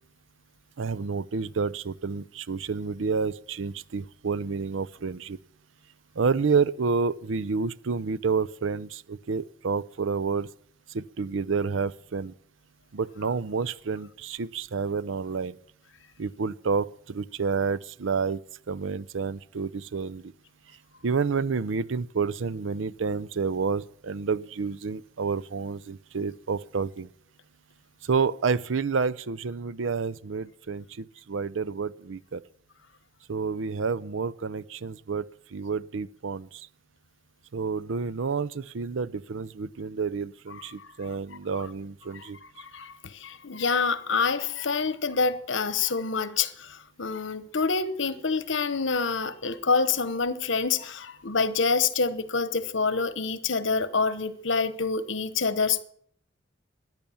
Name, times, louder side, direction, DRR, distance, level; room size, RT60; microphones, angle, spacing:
voice 1, 0.8-5.4 6.2-10.5 10.9-12.3 12.9-15.6 16.2-18.4 18.7-20.3 21.0-27.1 28.0-32.4 33.3-35.2 35.5-36.7 37.5-42.4, right 5 dB, 80° right, 0.5 m, -29 dB
voice 2, 41.0-41.4 42.1-55.8, left 4 dB, 75° left, 1.1 m, -27 dB
14.0 x 10.5 x 7.1 m
head